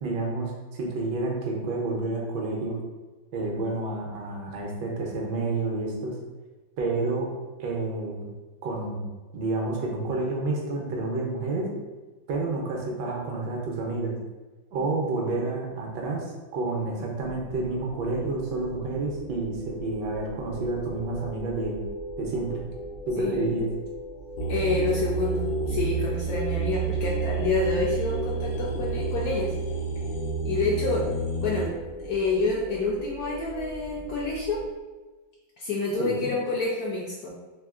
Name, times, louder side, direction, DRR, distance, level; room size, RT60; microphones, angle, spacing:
voice 1, 0.0-2.8 3.3-6.1 6.8-7.3 7.6-8.3 8.6-11.7 12.3-14.1 14.7-16.2 16.5-21.8 22.2-22.6 23.1-23.7 36.0-36.3, right 2 dB, 75° right, -1 dB, 1.3 m, -29 dB
sound 1, 17.2-34.7, equal, 55° left, 0.5 m, -41 dB
voice 2, 23.2-23.5 24.5-29.5 30.4-31.1 31.4-31.7 32.0-34.6 35.6-37.3, left 3 dB, 70° left, -4 dB, 0.9 m, -28 dB
sound 2, 24.4-31.7, right 3 dB, 90° left, 1.4 m, -29 dB
3.6 x 2.7 x 2.3 m, 1.2 s
omnidirectional pair, 2.0 m